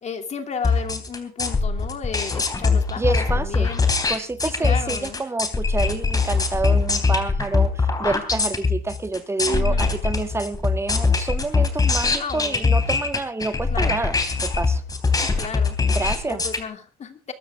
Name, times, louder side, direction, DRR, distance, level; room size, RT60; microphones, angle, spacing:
voice 1, 0.0-3.8 4.4-5.2 9.4-9.9 12.2-12.7 13.7-14.0 15.2-15.8 16.3-17.3, left 6 dB, 40° left, 7 dB, 2.8 m, -33 dB
sound 1, 0.6-16.6, left 4 dB, 20° left, 3.4 m, -22 dB
voice 2, 3.0-3.7 4.1-14.8 15.9-16.4, right 3 dB, 15° right, 10 dB, 1.7 m, -28 dB
22.5 x 12.5 x 3.6 m, 0.34 s
cardioid pair, 110°, 17 cm